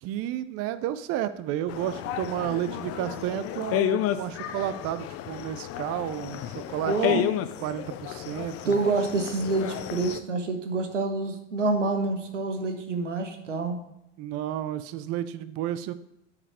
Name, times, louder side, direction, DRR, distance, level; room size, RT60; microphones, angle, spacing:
voice 1, 0.0-7.2 7.6-8.8 14.2-15.9, right 12 dB, 40° right, 13 dB, 0.5 m, -32 dB
sound 1, 1.7-10.2, left 11 dB, 40° left, 0.6 m, -32 dB
voice 2, 6.9-7.2 8.6-13.8, right 3 dB, 90° right, 6 dB, 1.1 m, -27 dB
9.7 x 4.9 x 4.8 m, 0.84 s
hypercardioid pair, 70°, 35 cm